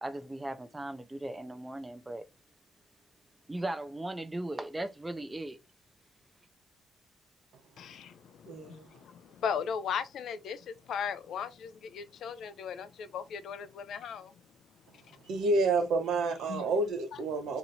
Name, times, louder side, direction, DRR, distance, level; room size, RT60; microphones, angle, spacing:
voice 1, 0.0-2.2 3.5-5.6, right 1 dB, 15° right, 0.5 m, -37 dB
voice 2, 7.8-14.3 16.5-16.7, left 7 dB, 75° left, 0.5 m, -37 dB
voice 3, 8.5-8.9 15.2-17.6, right 3 dB, 85° right, 1.0 m, -29 dB
2.9 x 2.6 x 4.1 m
cardioid pair, 110°, 0 cm